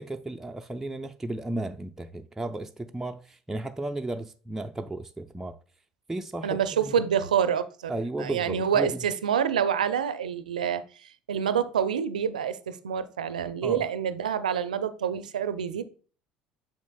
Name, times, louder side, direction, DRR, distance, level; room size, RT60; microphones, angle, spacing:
voice 1, 0.0-5.6 6.1-6.9 7.9-9.0 13.6-13.9, right 2 dB, 10° right, 0.5 m, -34 dB
voice 2, 6.4-7.9 8.2-15.9, right 8 dB, 85° right, 0.5 m, -27 dB
8.4 x 6.3 x 2.3 m
hypercardioid pair, 65°, 4 cm